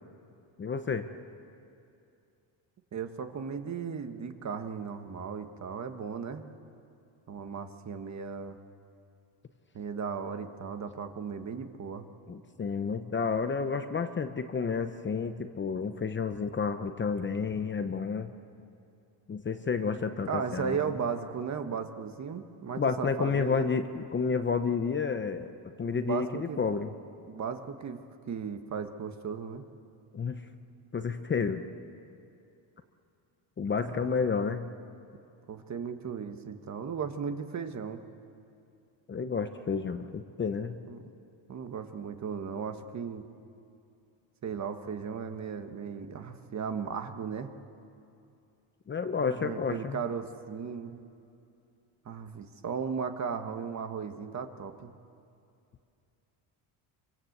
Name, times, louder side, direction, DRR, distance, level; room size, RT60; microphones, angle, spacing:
voice 1, 0.6-1.1 12.3-18.3 19.3-20.8 22.8-25.5 25.8-26.9 30.1-30.4 30.9-31.6 33.6-34.7 39.1-40.8 48.9-50.0, left 5 dB, 25° left, 8 dB, 0.8 m, -30 dB
voice 2, 2.9-6.4 7.3-8.6 9.7-12.1 20.3-23.7 25.9-26.6 27.3-28.0 28.3-29.6 34.0-34.1 35.5-38.0 40.9-41.1 41.5-43.3 44.4-47.5 49.3-51.0 52.0-54.9, right 6 dB, 35° right, 7 dB, 1.5 m, -36 dB
26.5 x 25.0 x 8.1 m, 2.6 s
cardioid pair, 145°, 47 cm